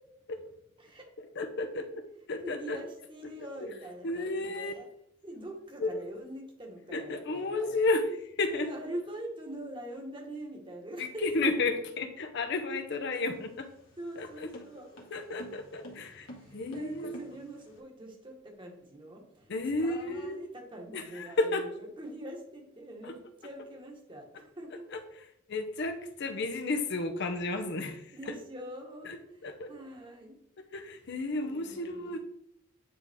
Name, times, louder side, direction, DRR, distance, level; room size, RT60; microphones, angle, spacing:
voice 1, 0.8-1.1 2.4-4.9 5.2-7.8 8.4-11.6 14.0-14.9 16.2-19.5 19.8-24.8 28.1-30.4 31.4-32.2, right 1 dB, 25° right, 0 dB, 1.4 m, -44 dB
voice 2, 1.4-2.0 2.3-2.8 4.0-4.7 5.8-5.9 6.9-8.1 8.4-8.7 11.0-13.7 14.2-14.3 15.1-16.3 16.5-17.2 19.5-20.5 20.9-21.6 25.5-28.0 29.4-29.7 30.7-32.2, left 2 dB, 55° left, 7 dB, 0.7 m, -32 dB
sound 1, 13.0-17.8, equal, 80° left, 1.8 m, -50 dB
9.6 x 3.7 x 3.5 m, 0.73 s
head